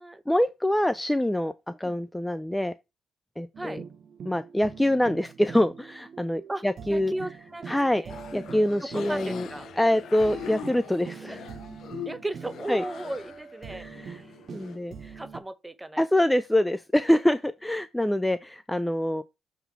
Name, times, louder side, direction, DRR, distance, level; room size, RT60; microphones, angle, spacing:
voice 1, 0.3-2.7 3.4-3.8 4.3-7.1 7.7-8.0 8.3-9.5 9.8-11.5 12.7-12.8 13.7-14.2 14.5-15.2 16.0-19.2, left 1 dB, 5° left, 0.4 m, -25 dB
sound 1, 3.5-15.4, right 6 dB, 50° right, 1.0 m, -44 dB
voice 2, 6.9-8.5 8.8-9.7 12.0-13.9 14.1-14.3 15.2-16.0, right 1 dB, 15° right, 0.8 m, -36 dB
sound 2, 8.1-14.8, left 9 dB, 65° left, 0.7 m, -42 dB
6.9 x 3.9 x 4.6 m
cardioid pair, 90°, 0 cm